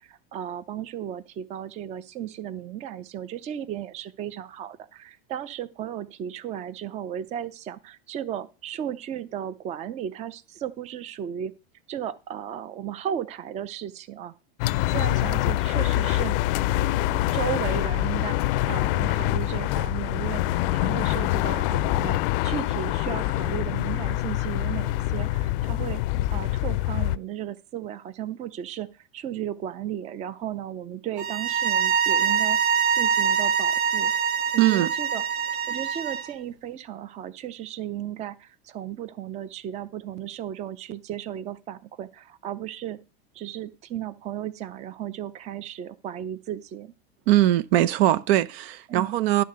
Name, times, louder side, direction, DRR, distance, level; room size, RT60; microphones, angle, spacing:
voice 1, 0.0-11.5 11.9-14.3 14.9-16.4 17.1-22.2 22.4-26.0 26.3-32.6 32.9-34.1 34.5-35.2 35.7-43.0 43.3-46.9 48.9-49.1, right 10 dB, 20° right, 0.5 m, -35 dB
sound 1, 14.6-27.2, left 16 dB, 60° left, 0.5 m, -25 dB
sound 2, 31.2-36.3, right 7 dB, 55° right, 1.3 m, -24 dB
voice 2, 34.6-34.9 47.3-49.4, right 13 dB, 75° right, 0.7 m, -21 dB
11.0 x 4.0 x 6.6 m
supercardioid pair, 155°, 31 cm